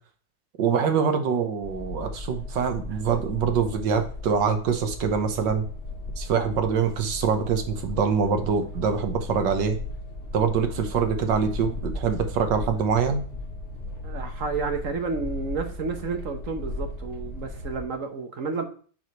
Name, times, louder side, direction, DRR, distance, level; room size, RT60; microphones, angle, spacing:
voice 1, 0.6-5.6 6.2-9.8 10.3-13.2, right 6 dB, 70° right, 1.7 m, -24 dB
sound 1, 1.6-17.8, left 2 dB, 30° left, 2.5 m, -36 dB
voice 2, 14.0-18.6, right 4 dB, 50° right, 1.1 m, -31 dB
8.2 x 4.9 x 4.7 m
omnidirectional pair, 2.0 m